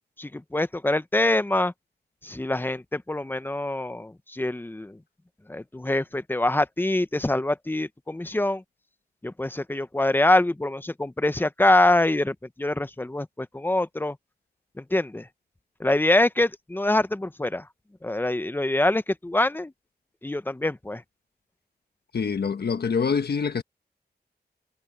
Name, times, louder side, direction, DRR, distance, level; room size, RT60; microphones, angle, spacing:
voice 1, 0.2-1.7 2.2-5.0 5.5-8.6 9.2-14.2 14.8-15.3 15.8-17.7 18.0-19.7 20.2-21.0, left 1 dB, 10° left, 0.8 m, -24 dB
voice 2, 22.1-23.6, left 5 dB, 70° left, 1.3 m, -25 dB
wide cardioid pair, 105°, 17 cm